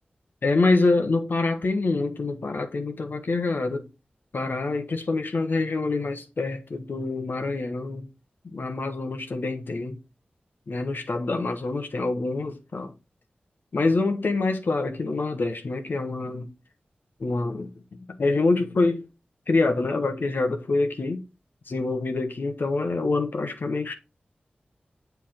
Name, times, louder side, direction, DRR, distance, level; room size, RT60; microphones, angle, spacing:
voice 1, 0.4-3.8 4.3-8.1 8.4-10.0 10.7-12.9 13.7-16.5 17.2-19.1 19.5-21.2 21.7-23.9, left 3 dB, 70° left, 1.1 m, -26 dB
7.5 x 3.5 x 4.3 m
cardioid pair, 45°, 4 cm